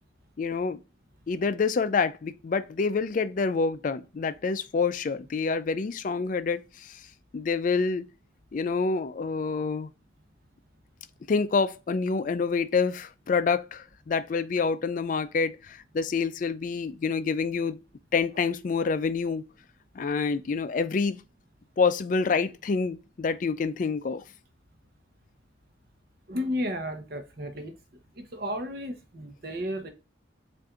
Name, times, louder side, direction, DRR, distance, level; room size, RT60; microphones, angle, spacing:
voice 1, 0.4-0.8 1.3-7.0 7.3-8.0 8.5-9.9 11.3-17.8 18.1-19.5 20.0-21.2 21.8-24.2, left 4 dB, 40° left, 0.3 m, -27 dB
voice 2, 26.3-27.7 28.2-29.9, left 1 dB, 50° right, 0.8 m, -33 dB
7.3 x 2.6 x 2.4 m
head